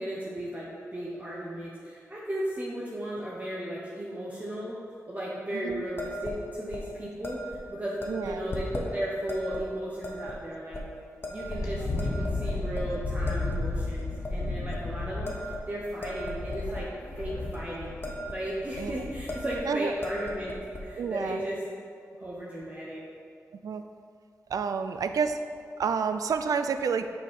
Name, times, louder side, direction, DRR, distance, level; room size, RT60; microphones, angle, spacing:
voice 1, 0.0-4.8 5.1-10.8 11.3-16.9 17.2-18.0 18.3-20.6 20.8-21.6 22.2-23.0, equal, 25° right, -6 dB, 1.1 m, -35 dB
voice 2, 5.5-5.8 8.1-8.4 18.8-19.0 19.7-19.9 21.0-21.4 23.6-23.8 24.5-25.4 25.8-27.1, right 6 dB, 80° right, 9 dB, 0.3 m, -29 dB
sound 1, 6.0-6.4 6.7-6.8 7.2-7.6 8.0-8.9 9.3-9.6 10.0-10.4 10.7-10.8 11.2-11.7 12.0-12.9 13.3-13.6 14.0-14.3 14.7-14.9 15.3-16.9 17.3-17.6 17.9-18.4 18.6-18.8 19.3-19.6 19.9-20.8, left 1 dB, 40° left, 1.1 m, -37 dB
Wind, 11.4-19.5, left 2 dB, 65° left, 1.4 m, -33 dB
5.8 x 5.4 x 4.7 m, 2.4 s
cardioid pair, 50°, 6 cm